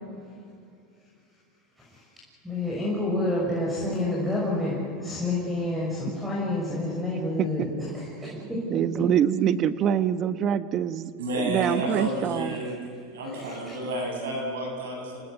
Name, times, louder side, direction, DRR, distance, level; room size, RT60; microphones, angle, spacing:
voice 1, 2.4-9.1 11.6-11.8 13.3-13.8, left 2 dB, 5° right, -4 dB, 6.3 m, -29 dB
voice 2, 7.2-7.7 8.4-11.1 11.4-12.6, right 9 dB, 40° right, 13 dB, 1.2 m, -25 dB
voice 3, 11.2-12.8 13.1-15.2, right 1 dB, 85° right, 1 dB, 7.7 m, -31 dB
27.5 x 19.5 x 8.0 m, 2.6 s
supercardioid pair, 115°, 0 cm